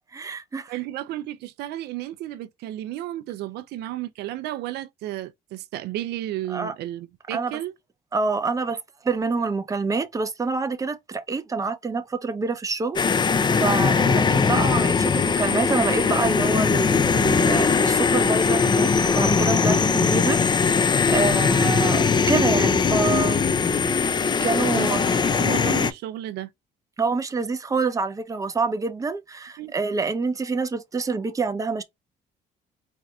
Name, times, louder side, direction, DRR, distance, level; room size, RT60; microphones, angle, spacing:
voice 1, 0.1-0.7 6.5-6.7 7.3-7.5 8.1-23.4 24.4-25.0 27.0-31.8, right 4 dB, 20° right, 0.7 m, -27 dB
voice 2, 0.7-7.7 14.0-14.1 14.4-14.5 24.7-26.5 29.6-29.7, right 14 dB, 75° right, 0.5 m, -33 dB
sound 1, 13.0-25.9, left 5 dB, 25° left, 0.5 m, -20 dB
4.3 x 2.5 x 2.3 m
cardioid pair, 110°, 17 cm